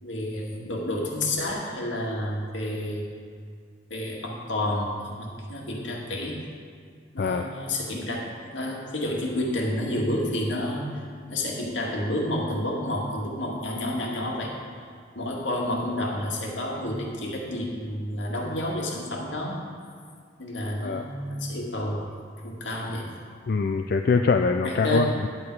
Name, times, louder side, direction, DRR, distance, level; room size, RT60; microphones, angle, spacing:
voice 1, 0.0-3.1 3.9-6.4 7.1-11.0 11.3-14.6 15.2-19.6 20.4-22.0 22.4-23.1 24.6-25.2, left 1 dB, 80° left, -2 dB, 1.9 m, -30 dB
voice 2, 23.5-25.3, left 4 dB, 55° left, 5 dB, 0.4 m, -23 dB
10.5 x 8.4 x 4.7 m, 2.1 s
head